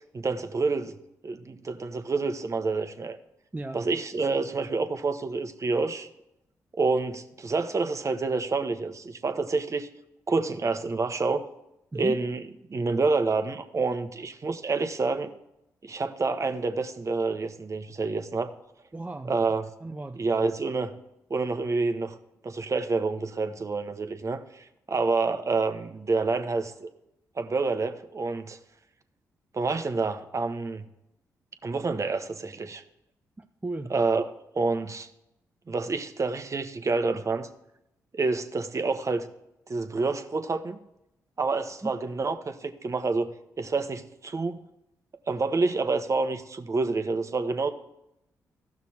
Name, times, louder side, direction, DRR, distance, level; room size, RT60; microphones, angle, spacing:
voice 1, 0.1-0.9 1.2-3.2 3.7-6.1 6.7-9.9 10.3-11.5 11.9-12.4 12.7-15.3 15.8-18.5 19.3-19.6 20.2-20.9 21.3-22.1 22.4-26.9 27.4-28.6 29.5-30.9 31.6-32.8 33.9-34.2 34.5-35.1 35.7-37.5 38.1-39.3 39.7-40.8 41.4-43.3 43.6-44.6 45.3-47.7, right 3 dB, 40° right, 1.1 m, -28 dB
voice 2, 3.5-3.9 11.9-12.2 18.9-19.4 19.8-20.3 33.4-33.9 41.8-42.0, right 2 dB, 20° right, 0.6 m, -35 dB
14.5 x 6.1 x 4.3 m
supercardioid pair, 45°, 8 cm